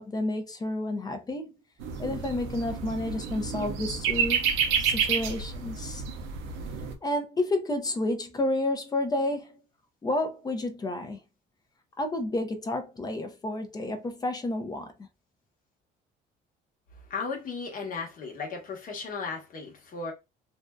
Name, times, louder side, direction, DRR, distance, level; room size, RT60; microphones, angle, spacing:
voice 1, 0.0-1.5 2.0-4.5 4.8-6.0 7.0-9.6 10.0-11.2 12.0-14.9, left 1 dB, 20° left, 0.5 m, -30 dB
sound 1, 1.8-6.9, right 6 dB, 80° right, 0.6 m, -29 dB
voice 2, 17.0-20.1, left 4 dB, 45° left, 1.0 m, -35 dB
2.5 x 2.2 x 2.2 m
cardioid pair, 120°, 20 cm